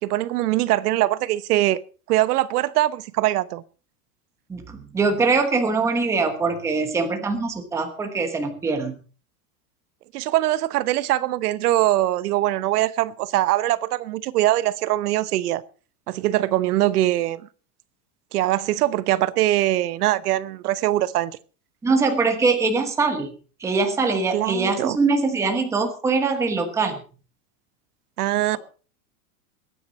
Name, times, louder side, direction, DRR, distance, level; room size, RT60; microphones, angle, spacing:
voice 1, 0.0-1.8 2.1-3.6 10.1-15.6 16.1-17.4 18.3-21.4 24.3-25.0 28.2-28.6, right 15 dB, 70° right, 1.0 m, -22 dB
voice 2, 4.5-9.0 21.8-23.3 23.6-27.0, right 4 dB, 5° right, 1.2 m, -22 dB
21.5 x 9.6 x 4.1 m
supercardioid pair, 180°, 47 cm